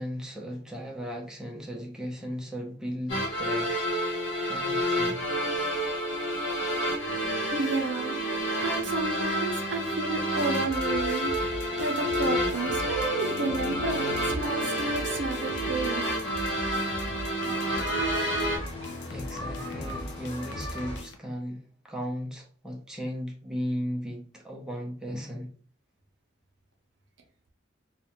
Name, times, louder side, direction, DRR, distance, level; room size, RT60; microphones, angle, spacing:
voice 1, 0.0-4.1 4.4-5.2 19.1-25.5, equal, 5° right, 0.4 m, -36 dB
sound 1, 3.1-18.6, equal, 80° left, 0.8 m, -29 dB
voice 2, 7.5-8.2 8.6-11.3 11.8-16.0, right 3 dB, 70° right, 0.6 m, -31 dB
sound 2, 10.4-21.2, left 2 dB, 60° left, 0.4 m, -39 dB
sound 3, 13.7-21.0, equal, 25° left, 1.1 m, -43 dB
2.4 x 2.1 x 2.8 m
head